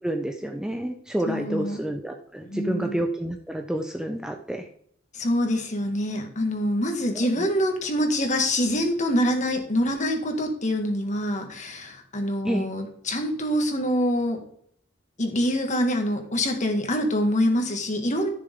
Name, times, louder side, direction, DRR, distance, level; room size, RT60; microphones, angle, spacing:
voice 1, 0.0-4.7 7.1-7.5 12.4-12.7, right 1 dB, 5° right, 3 dB, 0.7 m, -29 dB
voice 2, 1.3-1.8 2.4-3.0 5.1-14.4 15.2-18.3, equal, 40° left, 4 dB, 1.9 m, -25 dB
14.5 x 6.7 x 3.7 m, 0.65 s
head